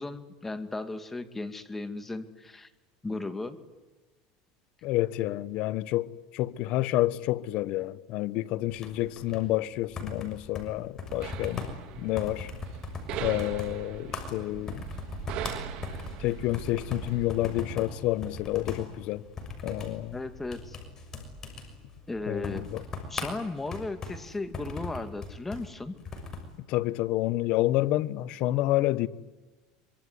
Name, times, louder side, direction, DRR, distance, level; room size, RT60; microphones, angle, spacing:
voice 1, 0.0-2.7 3.0-3.6 20.1-20.8 22.1-22.7 23.1-25.9, left 2 dB, 10° left, 2.3 m, -36 dB
voice 2, 4.8-11.7 12.0-12.5 13.2-14.8 16.2-19.2 19.6-20.1 22.3-22.8 26.7-29.1, left 16 dB, 60° left, 1.2 m, -29 dB
sound 1, 8.7-26.5, left 3 dB, 25° left, 6.5 m, -40 dB
sound 2, 11.2-17.3, right 10 dB, 55° right, 3.5 m, -40 dB
25.0 x 24.5 x 9.6 m
supercardioid pair, 130°, 2 cm